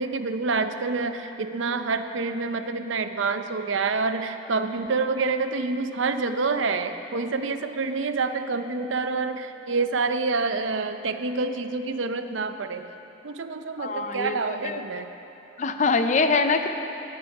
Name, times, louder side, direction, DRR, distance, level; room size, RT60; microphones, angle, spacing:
voice 1, 0.0-12.9 13.2-15.1, right 4 dB, 80° right, 9 dB, 0.6 m, -27 dB
voice 2, 13.8-14.8 15.6-16.7, left 4 dB, 40° left, 7 dB, 0.5 m, -24 dB
19.0 x 8.0 x 4.8 m, 3.0 s
head